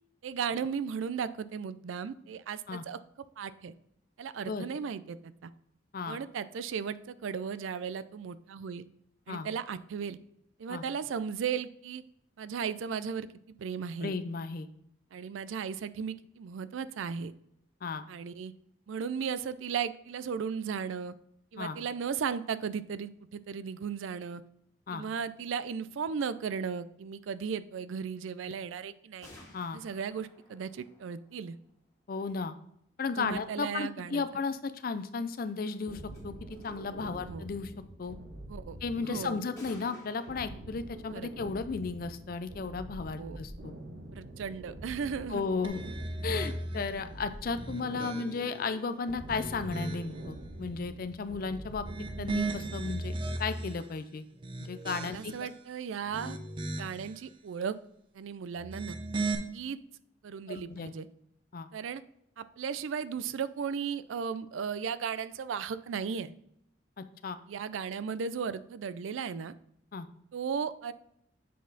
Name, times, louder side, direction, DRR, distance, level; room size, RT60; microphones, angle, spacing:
voice 1, 0.2-3.0 3.4-3.7 4.2-5.5 6.1-8.9 9.3-10.2 10.6-12.0 12.4-13.3 13.6-14.1 15.1-17.3 18.1-18.5 18.9-21.1 21.5-24.4 24.9-29.3 29.7-31.6 33.2-34.2 37.2-37.4 38.5-39.4 41.1-41.3 43.2-43.4 44.1-45.4 55.1-56.4 56.8-57.7 58.1-59.0 59.5-59.8 60.2-61.1 61.7-62.0 62.4-66.3 67.5-69.5 70.3-70.9, right 6 dB, 85° right, 15 dB, 0.4 m, -36 dB
voice 2, 14.0-14.7 17.8-18.1 21.6-21.8 24.9-25.0 29.5-29.8 32.1-32.6 33.0-37.7 38.0-38.2 38.8-43.7 45.3-45.8 46.2-51.9 52.2-53.1 53.4-54.2 54.6-55.3 60.5-60.9 61.5-61.7 67.0-67.4 69.9-70.1, left 4 dB, 50° left, 11 dB, 0.4 m, -34 dB
sound 1, 29.2-32.0 35.7-35.8 36.1-36.2 36.5-37.0 39.6-40.3, left 1 dB, 15° left, 1.8 m, -55 dB
sound 2, 35.9-53.5, right 1 dB, 70° right, 0.9 m, -46 dB
sound 3, 45.6-46.9 47.5-48.6 49.1-50.2 51.7-53.8 54.3-55.5 56.0-57.1 58.6-59.4, right 2 dB, 25° right, 0.5 m, -36 dB
7.4 x 4.1 x 4.0 m, 0.73 s
head